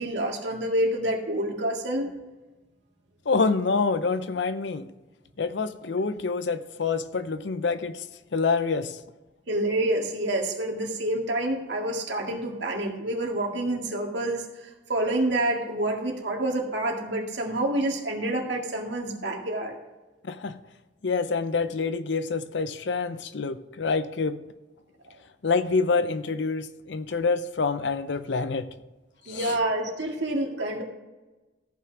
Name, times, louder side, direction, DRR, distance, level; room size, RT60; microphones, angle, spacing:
voice 1, 0.0-2.1 9.5-19.7 29.3-30.8, right 1 dB, 70° right, 1 dB, 1.9 m, -28 dB
voice 2, 3.3-4.9 5.4-8.0 8.3-9.0 20.2-20.6 21.0-24.4 25.4-28.7 29.3-29.5, left 4 dB, 70° left, 13 dB, 0.6 m, -27 dB
14.0 x 6.0 x 5.9 m, 1.1 s
head